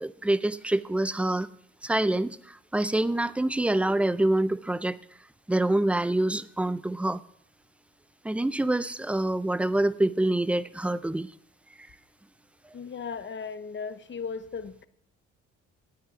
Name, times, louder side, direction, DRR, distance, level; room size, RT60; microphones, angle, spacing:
voice 1, 0.0-1.5 1.8-5.0 5.5-7.2 8.2-11.3, right 1 dB, 5° right, 16 dB, 0.4 m, -26 dB
voice 2, 12.7-14.9, left 5 dB, 40° left, 13 dB, 0.8 m, -36 dB
12.5 x 9.2 x 4.9 m, 0.70 s
cardioid pair, 90°, 30 cm